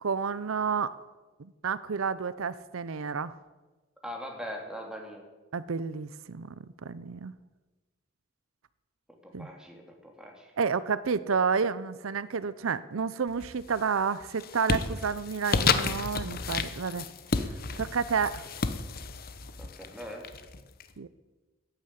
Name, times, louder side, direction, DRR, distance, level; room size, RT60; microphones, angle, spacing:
voice 1, 0.0-0.9 1.6-3.3 5.5-6.5 6.8-7.3 9.3-9.5 10.6-17.1 17.8-18.4 21.0-21.1, right 5 dB, 90° right, 16 dB, 0.6 m, -30 dB
voice 2, 4.0-5.2 9.2-10.5 19.6-20.3, equal, 5° right, 1 dB, 2.7 m, -41 dB
sound 1, 13.3-13.8 14.2-20.8, left 4 dB, 45° left, 0.9 m, -31 dB
15.0 x 9.5 x 8.5 m, 1.2 s
head